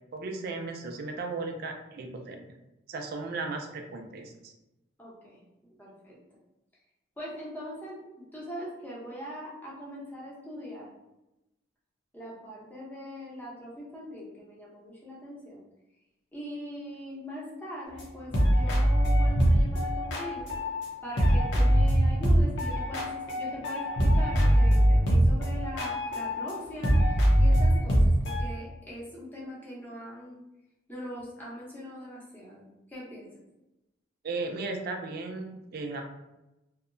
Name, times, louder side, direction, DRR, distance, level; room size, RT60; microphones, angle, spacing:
voice 1, 0.1-2.5 2.9-4.5 34.2-36.0, right 3 dB, 50° right, 3 dB, 0.3 m, -36 dB
voice 2, 5.0-5.4 5.8-6.2 7.2-10.9 12.1-15.6 16.3-20.5 21.0-30.4 30.9-33.3, equal, 10° left, -6 dB, 0.7 m, -41 dB
sound 1, 18.0-18.1 18.3-20.9 21.2-26.5 26.8-28.4, equal, 60° left, 0.6 m, -23 dB
2.7 x 2.1 x 2.5 m, 0.94 s
head